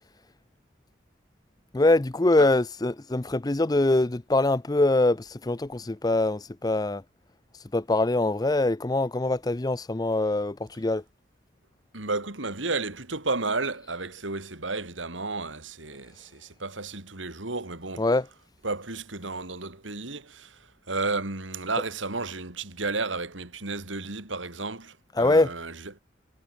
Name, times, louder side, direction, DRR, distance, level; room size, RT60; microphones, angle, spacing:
voice 1, 1.7-7.0 7.7-11.0 18.0-18.2 25.2-25.5, left 2 dB, 20° left, 0.6 m, -23 dB
voice 2, 11.9-18.1 18.6-26.0, right 3 dB, 85° right, 3.7 m, -32 dB
head